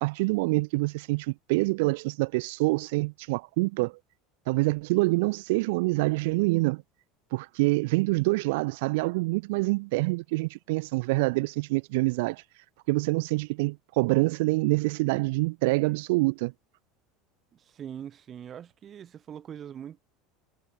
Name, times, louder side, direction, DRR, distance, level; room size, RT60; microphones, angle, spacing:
voice 1, 0.0-4.0 4.5-6.8 7.3-12.4 12.9-16.5, right 24 dB, 60° right, 0.3 m, -26 dB
voice 2, 17.5-20.0, right 9 dB, 35° right, 2.7 m, -42 dB
figure-of-eight pair, 75°, 0 cm